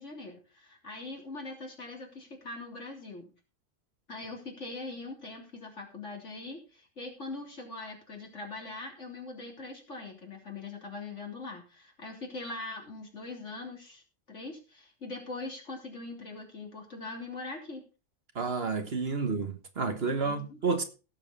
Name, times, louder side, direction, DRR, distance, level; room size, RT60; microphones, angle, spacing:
voice 1, 0.0-3.3 4.1-14.0 14.3-17.8 20.2-20.6, left 3 dB, 70° left, 3.8 m, -42 dB
voice 2, 18.3-20.8, right 4 dB, 55° right, 1.6 m, -30 dB
17.0 x 7.3 x 4.2 m
omnidirectional pair, 1.3 m